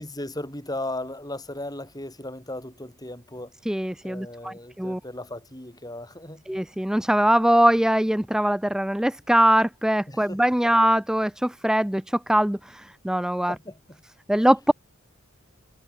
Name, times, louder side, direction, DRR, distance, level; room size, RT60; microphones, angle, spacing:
voice 1, 0.0-3.6 4.0-6.4 10.1-10.7 13.5-14.0 14.3-14.5, left 1 dB, 15° left, 7.6 m, -36 dB
voice 2, 3.7-5.0 6.5-13.5 14.3-14.7, right 1 dB, 5° right, 0.4 m, -22 dB
head